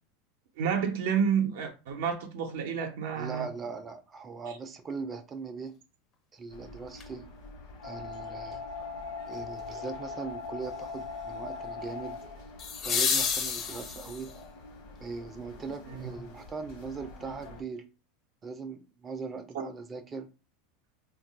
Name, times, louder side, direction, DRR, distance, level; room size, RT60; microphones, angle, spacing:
voice 1, 0.6-3.5 15.9-16.2 19.5-19.7, right 7 dB, 80° right, 0.5 m, -30 dB
voice 2, 3.1-5.8 6.3-7.3 7.8-8.6 9.3-12.2 12.8-14.3 15.0-17.9 18.4-20.3, right 4 dB, 25° right, 0.3 m, -40 dB
sound 1, 6.5-17.6, left 4 dB, 70° left, 0.9 m, -42 dB
sound 2, 7.0-7.1 12.6-14.4 16.6-16.7, left 6 dB, 35° left, 0.5 m, -30 dB
2.3 x 2.1 x 3.8 m
supercardioid pair, 120°, 0 cm